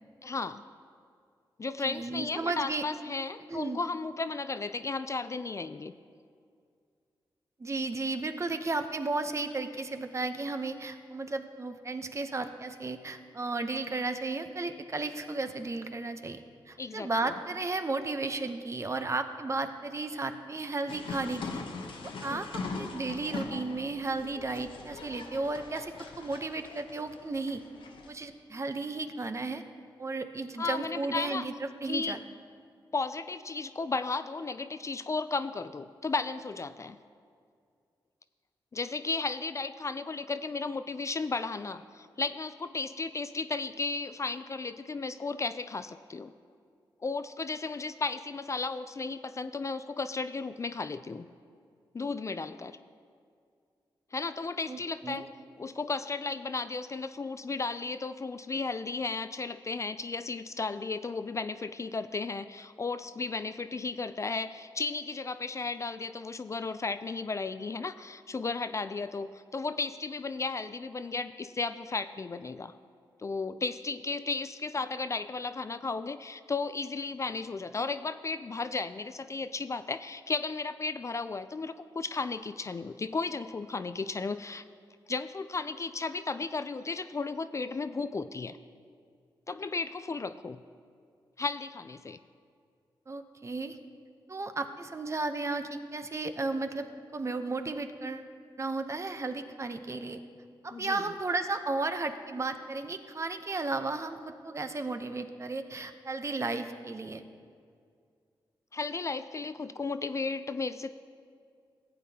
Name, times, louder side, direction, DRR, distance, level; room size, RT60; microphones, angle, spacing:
voice 1, 0.2-0.6 1.6-5.9 16.8-17.3 22.3-22.5 30.6-31.5 31.8-32.2 32.9-37.0 38.7-46.3 47.0-51.3 51.9-52.8 54.1-55.3 55.6-72.7 73.2-84.6 85.1-88.6 89.5-90.6 91.4-92.2 100.7-101.1 108.7-110.9, left 4 dB, 35° left, 11 dB, 0.4 m, -34 dB
voice 2, 1.8-2.8 3.5-3.8 7.6-16.4 16.7-21.6 22.2-22.5 22.8-27.6 28.1-29.6 30.0-32.2 54.7-55.3 93.1-93.8 94.3-98.3 98.6-100.2 100.6-107.2, right 3 dB, 35° right, 8 dB, 0.7 m, -34 dB
sound 1, 20.9-28.1, left 4 dB, 75° left, 0.9 m, -41 dB
14.5 x 8.3 x 2.8 m, 2.2 s
cardioid pair, 55°, 9 cm